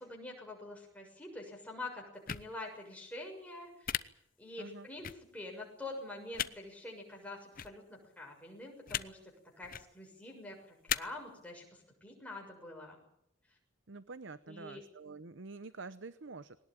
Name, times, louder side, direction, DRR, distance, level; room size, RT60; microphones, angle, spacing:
voice 1, 0.0-3.9 4.4-13.0 14.5-14.8, left 2 dB, 5° left, 0 dB, 6.8 m, -46 dB
sound 1, 2.3-2.4 3.8-4.0 5.0-5.1 6.3-6.5 7.5-7.7 8.9-9.0 9.6-9.8 10.9-11.0, left 9 dB, 45° left, 0.8 m, -34 dB
voice 2, 13.9-16.6, right 3 dB, 65° right, 14 dB, 0.8 m, -47 dB
20.5 x 19.0 x 9.0 m, 0.78 s
head